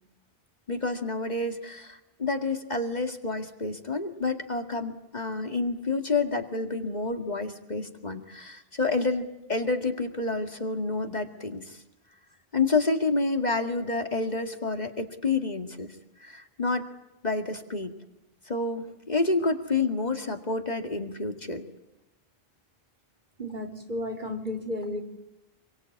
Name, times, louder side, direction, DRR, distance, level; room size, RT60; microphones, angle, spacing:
voice 1, 0.7-11.8 12.5-15.9 16.2-16.9 17.2-17.9 18.5-21.6, left 3 dB, 45° left, 4 dB, 2.2 m, -29 dB
voice 2, 23.4-25.0, left 1 dB, 50° right, 1 dB, 3.9 m, -33 dB
27.5 x 23.5 x 8.6 m, 0.92 s
omnidirectional pair, 1.0 m